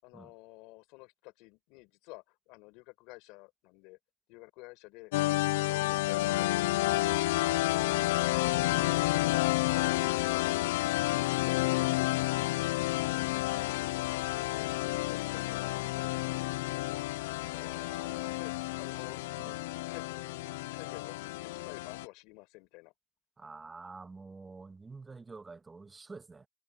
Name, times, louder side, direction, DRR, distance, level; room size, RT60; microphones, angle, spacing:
voice 1, 0.0-4.0 4.3-7.2 16.8-17.0 18.4-19.2 19.9-20.3 20.7-22.9, left 25 dB, 70° left, 5.4 m, -51 dB
sound 1, 5.1-22.0, left 19 dB, 90° left, 0.4 m, -30 dB
voice 2, 7.8-8.9 19.4-19.6 23.4-26.5, right 4 dB, 15° right, 2.0 m, -48 dB
sound 2, 12.1-19.0, left 6 dB, 25° left, 2.2 m, -58 dB
supercardioid pair, 120°, 0 cm